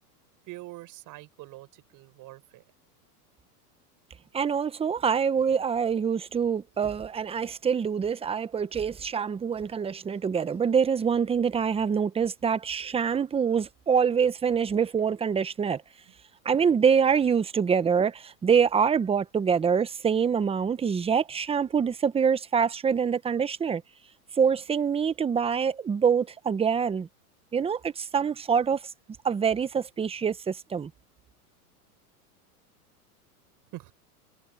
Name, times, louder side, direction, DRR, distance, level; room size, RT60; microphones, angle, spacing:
voice 1, 0.5-2.6 16.1-16.2 33.7-33.9, right 19 dB, 45° right, 7.2 m, -44 dB
voice 2, 4.3-15.8 16.4-23.8 24.4-27.1 27.5-28.8 29.2-30.9, right 6 dB, 10° right, 0.9 m, -25 dB
supercardioid pair, 125°, 46 cm